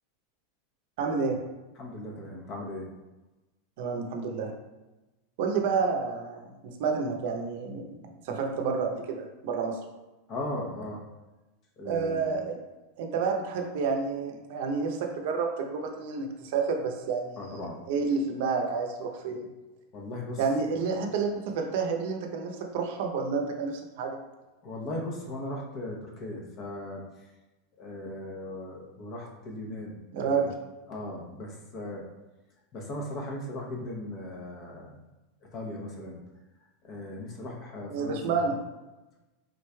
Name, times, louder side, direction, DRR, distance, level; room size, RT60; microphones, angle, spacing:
voice 1, 1.0-1.4 3.8-4.5 5.4-8.0 8.2-9.8 11.8-12.6 13.0-19.5 20.4-24.2 30.1-30.5 37.9-38.6, right 5 dB, 65° right, 3 dB, 0.6 m, -29 dB
voice 2, 1.8-2.9 10.3-11.0 11.8-12.3 17.4-17.8 19.9-20.4 24.6-27.0 27.8-30.5 30.9-32.0 32.7-35.0 35.5-36.2 36.8-38.4, left 1 dB, 35° left, 0 dB, 0.8 m, -38 dB
3.7 x 3.1 x 2.2 m, 1.1 s
supercardioid pair, 145°, 0 cm